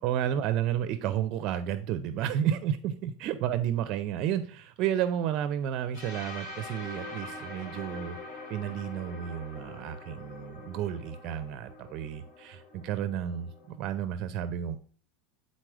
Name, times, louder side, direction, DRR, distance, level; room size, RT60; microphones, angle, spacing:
voice 1, 0.0-8.2 8.5-14.8, right 10 dB, 45° right, 11 dB, 0.5 m, -31 dB
sound 1, 5.9-13.8, left 2 dB, 60° left, 3.7 m, -44 dB
9.0 x 4.1 x 4.8 m, 0.43 s
supercardioid pair, 160°, 0 cm